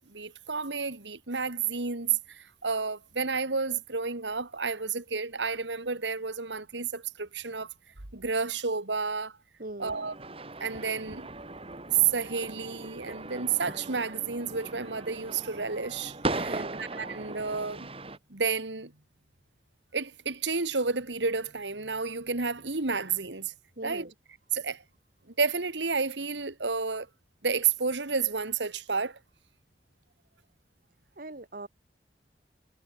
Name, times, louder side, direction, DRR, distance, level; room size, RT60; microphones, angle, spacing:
voice 1, 0.0-7.7 8.1-9.3 9.8-10.1 10.6-11.3 11.9-17.9 18.3-18.9 19.9-23.5 23.8-24.1 24.5-24.8 25.4-27.1 27.4-29.2, right 5 dB, 90° right, 2.2 m, -31 dB
voice 2, 9.6-10.0 16.5-16.8 23.8-24.1 31.2-31.7, right 2 dB, 55° right, 1.9 m, -41 dB
sound 1, 9.8-18.2, right 2 dB, 35° right, 2.9 m, -38 dB
head